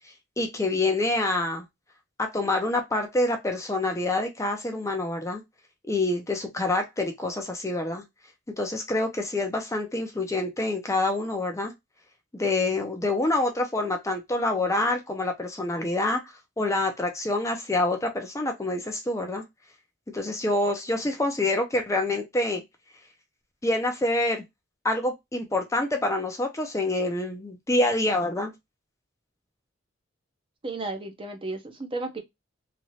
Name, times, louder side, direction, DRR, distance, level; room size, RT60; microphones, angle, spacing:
voice 1, 0.4-1.6 2.2-5.4 5.8-8.0 8.6-11.7 12.3-16.2 16.6-19.4 20.1-22.6 23.6-24.4 24.8-28.5, left 2 dB, 15° left, 0.5 m, -26 dB
voice 2, 30.6-32.2, right 2 dB, 25° right, 0.7 m, -33 dB
3.1 x 2.5 x 2.7 m
head